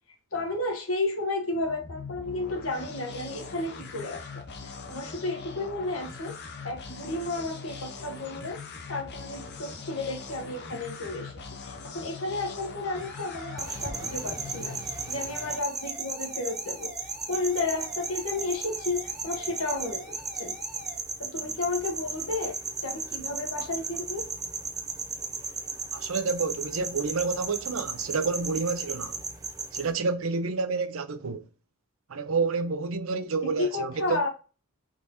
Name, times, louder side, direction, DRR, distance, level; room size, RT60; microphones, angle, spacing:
voice 1, 0.3-6.4 6.6-8.6 8.9-16.9 17.3-20.5 21.2-24.3 33.4-34.3, left 2 dB, 70° left, 1.2 m, -32 dB
sound 1, 1.5-15.3, left 4 dB, 55° left, 0.8 m, -42 dB
sound 2, 12.9-21.0, right 1 dB, 5° left, 1.4 m, -46 dB
sound 3, 13.6-29.9, right 4 dB, 15° right, 0.8 m, -35 dB
voice 2, 25.9-29.2 29.7-31.5 32.1-34.2, right 4 dB, 70° right, 0.6 m, -29 dB
4.8 x 3.7 x 2.7 m
head